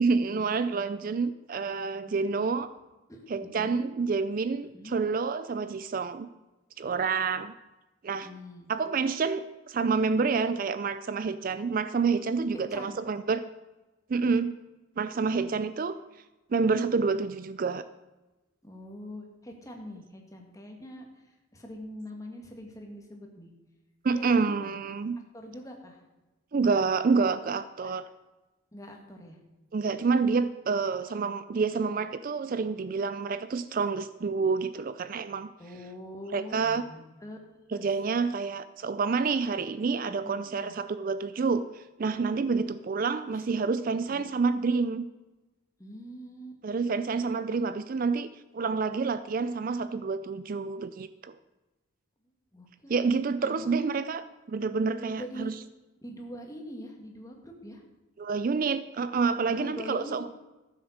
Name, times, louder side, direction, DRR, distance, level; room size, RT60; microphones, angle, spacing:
voice 1, 0.0-2.7 3.3-6.3 6.8-7.5 8.0-8.3 8.7-13.4 14.1-14.5 15.0-16.0 16.5-17.9 24.0-25.2 26.5-28.0 29.7-35.5 36.3-36.8 37.7-45.0 46.6-48.3 48.5-51.4 52.9-55.5 58.2-60.3, right 4 dB, 40° right, 13 dB, 0.4 m, -28 dB
voice 2, 2.1-2.6 3.1-3.9 4.7-5.0 8.2-8.7 12.5-13.0 18.6-23.5 24.1-24.7 25.3-26.0 27.8-27.9 28.7-29.4 35.6-37.4 37.7-37.9 40.1-40.8 43.3-43.4 44.0-44.4 45.8-46.6 52.5-53.1 53.4-54.0 55.2-55.5 56.0-57.8 59.5-60.3, equal, 15° left, 2 dB, 1.9 m, -43 dB
14.0 x 7.9 x 6.5 m, 1.1 s
head